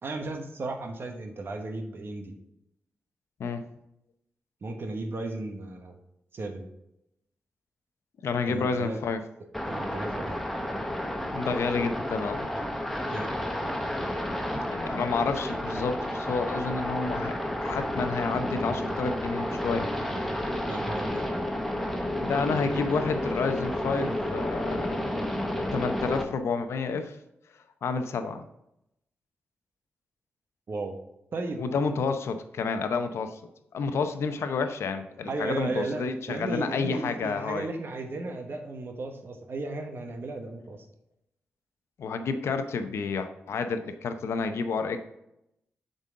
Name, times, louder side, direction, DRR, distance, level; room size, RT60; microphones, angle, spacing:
voice 1, 0.0-2.4 4.6-6.0 6.3-6.7 8.5-9.0 9.6-10.4 13.1-13.3 20.7-21.3 30.7-30.9 31.3-31.6 35.3-40.8, right 2 dB, 55° right, 4 dB, 1.1 m, -35 dB
voice 2, 8.2-9.2 11.3-12.5 14.7-20.2 22.2-24.9 25.7-27.2 27.5-28.4 31.6-33.4 33.7-37.7 42.0-45.0, left 4 dB, 80° left, 8 dB, 0.7 m, -30 dB
sound 1, 9.5-26.2, left 1 dB, 5° left, 1.0 m, -31 dB
7.4 x 4.1 x 3.7 m, 0.82 s
cardioid pair, 60°, 4 cm